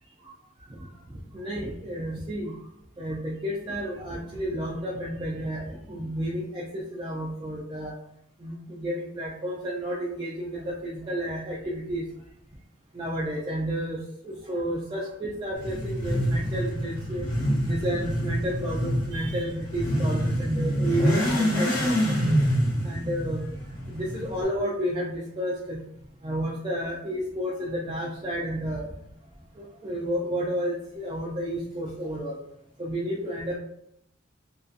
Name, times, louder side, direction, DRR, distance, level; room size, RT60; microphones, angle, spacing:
voice 1, 0.7-2.6 3.0-7.9 8.4-12.1 12.9-17.3 17.6-22.2 22.8-23.5 23.9-25.8 26.2-28.9 29.6-32.4 32.8-33.6, equal, 25° right, -5 dB, 0.3 m, -31 dB
Motorcycle / Accelerating revving vroom, 15.6-24.4, equal, 65° left, 1.0 m, -26 dB
2.5 x 2.3 x 2.3 m, 0.75 s
head